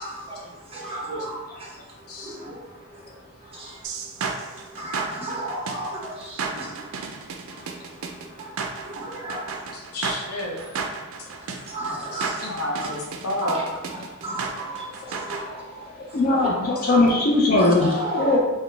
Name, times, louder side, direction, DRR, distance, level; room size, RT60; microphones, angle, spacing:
voice 1, 0.0-3.9 4.2-7.1 7.5-9.7 11.5-12.4 12.8-12.9 13.4-13.6 13.9-16.5 17.6-18.4, right 1 dB, 25° right, -4 dB, 0.9 m, -35 dB
sound 1, 3.8-15.4, right 5 dB, 65° right, 0.4 m, -33 dB
voice 2, 9.7-10.6 12.1-13.6, left 1 dB, 80° left, -2 dB, 0.8 m, -30 dB
voice 3, 16.0-18.4, left 2 dB, 40° left, -2 dB, 0.4 m, -20 dB
3.9 x 2.0 x 3.2 m, 1.1 s
head